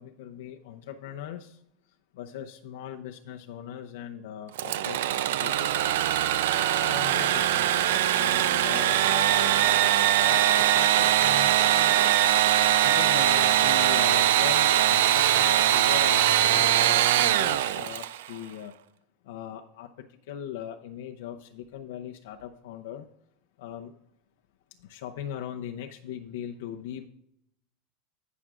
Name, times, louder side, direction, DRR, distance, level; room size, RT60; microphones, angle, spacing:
voice 1, 0.0-1.6 2.1-5.9 6.8-12.1 12.8-18.7 19.2-19.9 20.3-23.1 23.6-23.9 24.8-27.1, left 10 dB, 80° left, 3 dB, 0.6 m, -39 dB
Engine / Sawing, 4.6-18.3, right 12 dB, 85° right, 0.4 m, -22 dB
17.5 x 6.1 x 2.4 m, 0.74 s
supercardioid pair, 165°, 0 cm